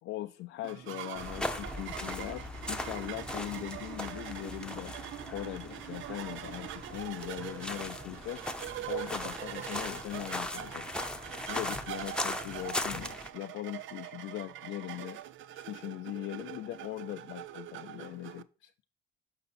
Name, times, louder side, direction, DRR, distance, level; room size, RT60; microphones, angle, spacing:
voice 1, 0.0-5.0 5.2-8.4 8.9-11.1 11.5-15.2 15.5-18.7, left 15 dB, 90° left, 0.5 m, -40 dB
sound 1, 0.6-18.4, right 12 dB, 75° right, 0.5 m, -43 dB
sound 2, 1.1-13.3, left 1 dB, 5° left, 0.8 m, -39 dB
6.6 x 5.6 x 4.1 m
cardioid pair, 90°, 20 cm